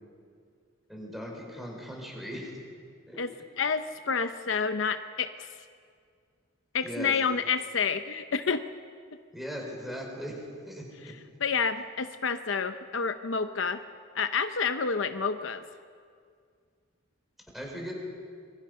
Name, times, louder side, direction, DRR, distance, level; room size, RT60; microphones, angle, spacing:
voice 1, 0.9-2.6 3.1-3.2 6.8-7.1 9.3-10.4 10.7-10.8 17.5-17.9, equal, ahead, -1 dB, 5.2 m, -38 dB
voice 2, 3.2-5.5 6.7-8.6 11.4-13.8 14.1-15.6, left 5 dB, 70° left, 9 dB, 0.8 m, -29 dB
26.0 x 24.0 x 5.7 m, 2.2 s
head